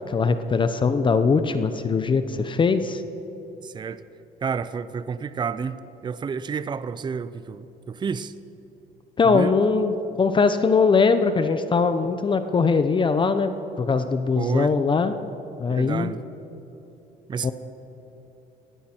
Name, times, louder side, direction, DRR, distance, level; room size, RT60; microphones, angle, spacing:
voice 1, 0.1-3.0 9.2-13.5 13.8-15.2 15.6-16.1 17.4-17.5, left 4 dB, 30° left, 0.8 m, -21 dB
voice 2, 3.6-4.0 4.4-5.8 6.0-8.3 9.2-9.5 14.4-14.7 15.7-16.2 17.3-17.5, right 6 dB, 25° right, 0.5 m, -30 dB
21.0 x 15.0 x 4.5 m
cardioid pair, 110°, 17 cm